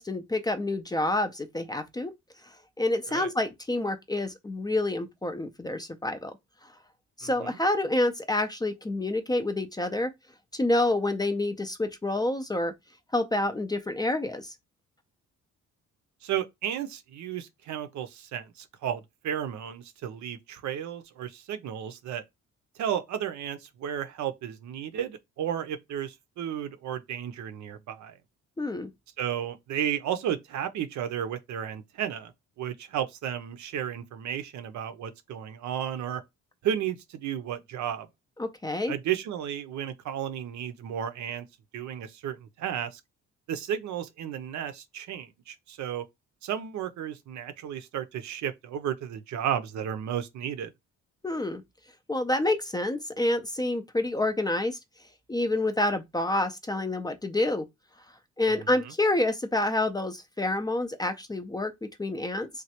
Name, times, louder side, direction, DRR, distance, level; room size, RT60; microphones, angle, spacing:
voice 1, 0.0-2.1 2.8-6.3 7.2-10.1 10.5-12.7 13.1-14.5 28.6-28.9 38.4-38.9 51.2-51.6 52.1-54.8 55.3-57.7 58.4-61.7 62.0-62.5, left 2 dB, 15° left, 0.4 m, -28 dB
voice 2, 7.2-7.6 16.2-22.2 22.8-28.2 29.2-32.3 32.6-36.2 36.6-38.1 38.9-41.5 41.7-43.0 43.5-46.0 46.4-50.7 58.5-58.9, right 9 dB, 70° right, 0.6 m, -33 dB
3.1 x 2.3 x 2.8 m
cardioid pair, 90°, 30 cm